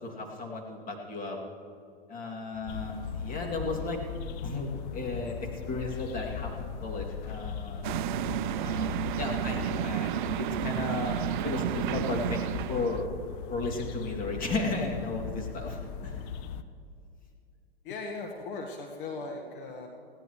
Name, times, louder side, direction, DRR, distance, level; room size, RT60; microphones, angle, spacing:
voice 1, 0.0-1.4 2.1-7.8 8.5-13.1 13.5-16.3, left 2 dB, 25° left, 0 dB, 2.6 m, -35 dB
sound 1, 2.7-16.6, left 7 dB, 40° left, 0.8 m, -38 dB
sound 2, 7.8-13.1, right 12 dB, 55° right, 0.4 m, -31 dB
voice 2, 17.8-19.9, left 3 dB, 60° left, 2 dB, 1.6 m, -38 dB
20.5 x 16.5 x 3.2 m, 2.4 s
hypercardioid pair, 115°, 30 cm